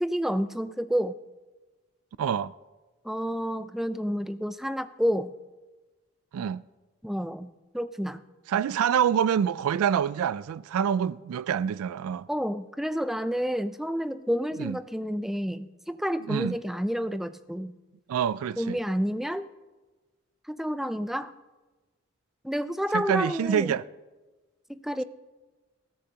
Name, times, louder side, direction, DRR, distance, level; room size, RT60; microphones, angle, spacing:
voice 1, 0.0-1.1 3.0-5.3 7.0-7.5 7.7-8.2 12.3-17.7 18.6-19.5 20.5-21.3 22.4-23.7 24.7-25.0, equal, ahead, 0.3 m, -29 dB
voice 2, 2.2-2.5 6.3-6.6 8.5-12.3 14.6-14.8 16.3-16.6 18.1-18.8 22.9-23.8, right 8 dB, 90° right, 0.3 m, -26 dB
20.0 x 14.0 x 2.9 m
head